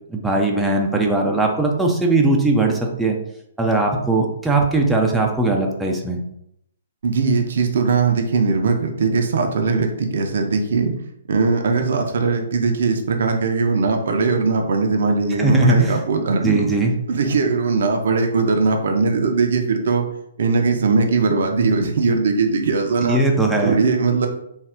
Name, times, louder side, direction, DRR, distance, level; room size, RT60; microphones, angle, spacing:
voice 1, 0.1-3.2 3.6-6.2 15.4-16.0 16.4-16.9 23.0-23.8, right 2 dB, 5° right, 0 dB, 0.5 m, -19 dB
voice 2, 7.0-10.9 11.3-16.7 17.1-20.1 20.4-23.2 23.6-24.3, right 4 dB, 55° right, 4 dB, 0.5 m, -20 dB
3.4 x 2.3 x 3.6 m, 0.76 s
figure-of-eight pair, 120°, 0 cm